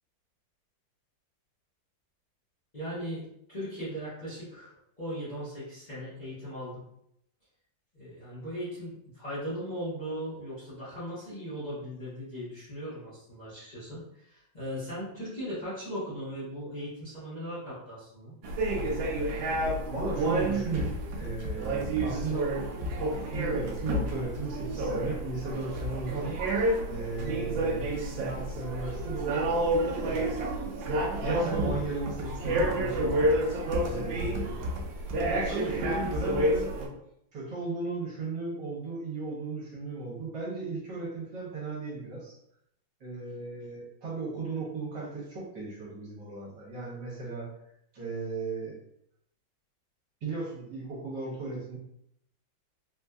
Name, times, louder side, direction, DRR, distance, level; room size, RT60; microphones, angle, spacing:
voice 1, 2.7-4.7 5.0-6.8 7.9-18.3, equal, 25° left, -10 dB, 1.1 m, -38 dB
sound 1, 18.4-36.9, right 1 dB, 90° right, 1.4 m, -30 dB
voice 2, 19.9-22.5 23.3-26.4 26.9-30.6 31.2-33.1 33.9-34.7 35.3-36.7 37.3-42.3 43.0-47.5 47.9-48.7 50.2-51.8, right 3 dB, 70° right, -5 dB, 1.7 m, -36 dB
3.9 x 2.6 x 2.3 m, 0.75 s
omnidirectional pair, 2.0 m